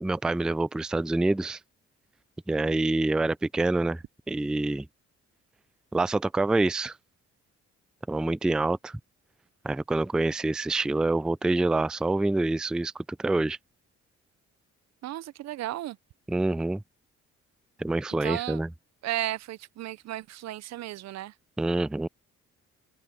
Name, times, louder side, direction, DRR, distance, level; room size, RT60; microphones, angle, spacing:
voice 1, 0.0-1.6 2.5-4.9 5.9-7.0 8.1-9.0 9.6-13.6 16.3-16.8 17.8-18.7 21.6-22.1, right 2 dB, 5° right, 0.3 m, -26 dB
voice 2, 15.0-16.0 18.2-18.6 19.0-21.3, right 14 dB, 60° right, 0.6 m, -34 dB
cardioid pair, 90°, 30 cm